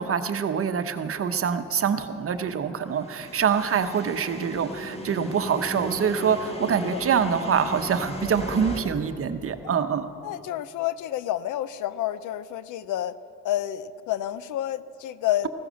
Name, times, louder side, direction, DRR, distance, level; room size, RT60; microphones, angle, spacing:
voice 1, 0.0-10.1, right 7 dB, 45° right, 9 dB, 1.0 m, -25 dB
sound 1, 3.0-8.8, equal, 20° left, 1.8 m, -36 dB
voice 2, 6.6-7.0 9.6-9.7 10.2-13.2 13.4-15.5, left 13 dB, 80° left, 16 dB, 0.6 m, -29 dB
15.0 x 15.0 x 6.4 m, 2.8 s
cardioid pair, 90°, 30 cm